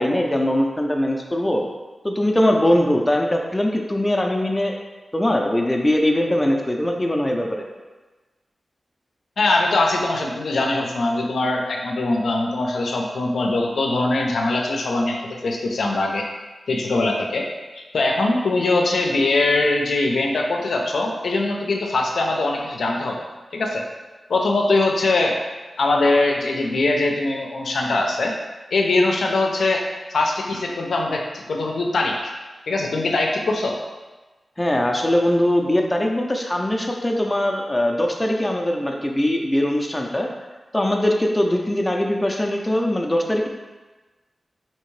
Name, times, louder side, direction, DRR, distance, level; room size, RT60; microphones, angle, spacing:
voice 1, 0.0-1.6 2.0-4.7 5.1-7.7 34.6-40.3 40.7-43.5, left 1 dB, 15° left, 1 dB, 0.5 m, -21 dB
voice 2, 9.4-16.3 16.7-17.5 17.8-23.2 23.5-23.8 24.3-25.4 25.8-28.3 28.7-29.8 30.1-32.3 32.7-33.8, left 2 dB, 85° left, 1 dB, 0.5 m, -22 dB
3.4 x 2.8 x 3.1 m, 1.2 s
cardioid pair, 60°, 0 cm